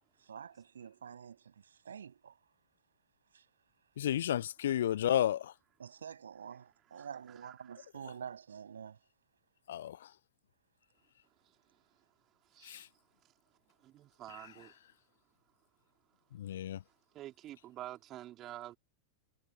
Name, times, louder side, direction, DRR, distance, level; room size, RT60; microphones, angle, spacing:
voice 1, 0.2-2.4 3.3-3.4 5.8-9.0, right 7 dB, 70° right, 7.5 m, -48 dB
voice 2, 4.0-5.5 9.7-10.0 12.6-12.8 16.3-16.8, left 11 dB, 60° left, 0.5 m, -32 dB
voice 3, 6.9-7.7 12.5-12.9 13.8-14.8 17.1-18.8, right 13 dB, 35° right, 3.8 m, -48 dB
figure-of-eight pair, 90°, 0 cm